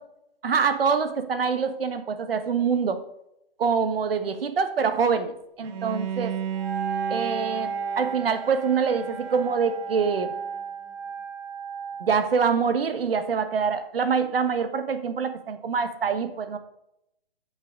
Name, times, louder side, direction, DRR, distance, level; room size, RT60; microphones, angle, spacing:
voice 1, 0.4-3.0 3.6-6.3 7.1-7.7 7.9-10.3 12.0-16.6, right 6 dB, 70° right, 9 dB, 1.4 m, -25 dB
Bowed string instrument, 5.6-10.6, right 8 dB, 25° right, 1.1 m, -35 dB
Wind instrument woodwind instrument, 6.5-12.1, right 6 dB, ahead, 3.0 m, -34 dB
8.1 x 7.2 x 5.2 m, 0.80 s
hypercardioid pair, 135°, 30 cm